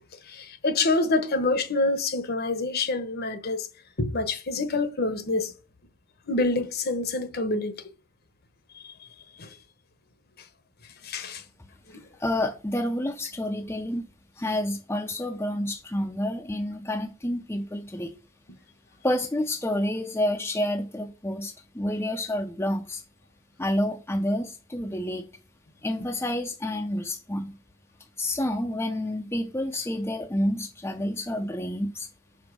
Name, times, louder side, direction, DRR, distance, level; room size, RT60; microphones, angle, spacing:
voice 1, 0.3-3.7 4.0-5.5 6.3-7.8 8.8-8.9 9.4-9.5 11.0-11.4, left 3 dB, 50° left, 0.9 m, -26 dB
voice 2, 12.2-14.1 14.4-18.1 19.0-23.0 23.6-25.3 25.8-27.6 28.2-32.1, left 1 dB, 10° left, 0.5 m, -29 dB
5.2 x 4.4 x 6.1 m
head